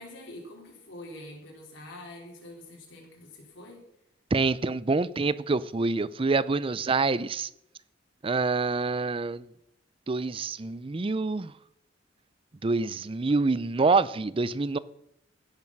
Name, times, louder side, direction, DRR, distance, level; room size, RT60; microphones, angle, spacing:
voice 1, 0.0-3.8, left 1 dB, 80° left, 3.8 m, -45 dB
voice 2, 4.3-7.5 8.2-9.5 10.1-11.5 12.6-14.8, right 3 dB, 30° right, 0.5 m, -26 dB
16.5 x 7.3 x 5.9 m
head